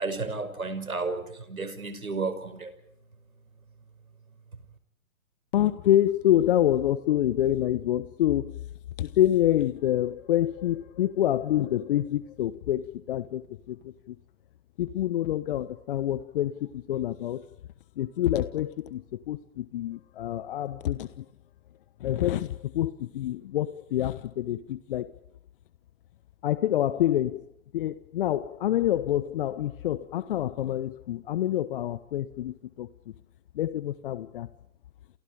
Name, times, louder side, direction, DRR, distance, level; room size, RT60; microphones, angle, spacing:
voice 1, 0.0-2.7, right 3 dB, 85° right, 5.8 m, -32 dB
voice 2, 5.5-8.5 9.0-14.2 14.8-17.5 18.0-21.2 22.0-25.1 26.4-27.4 27.7-32.9 33.5-34.5, left 12 dB, 40° left, 1.2 m, -27 dB
29.5 x 28.0 x 5.0 m
figure-of-eight pair, 130°, 41 cm